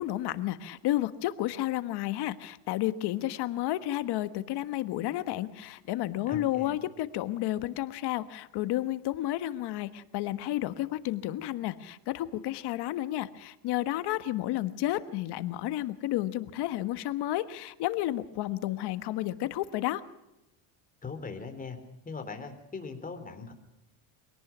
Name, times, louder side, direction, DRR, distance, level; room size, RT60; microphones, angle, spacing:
voice 1, 0.0-20.0, left 14 dB, 60° left, 12 dB, 1.4 m, -31 dB
voice 2, 6.3-6.8 21.0-21.8 22.1-23.5, left 4 dB, 20° left, 7 dB, 3.7 m, -40 dB
24.5 x 18.0 x 6.1 m, 0.92 s
cardioid pair, 125°, 46 cm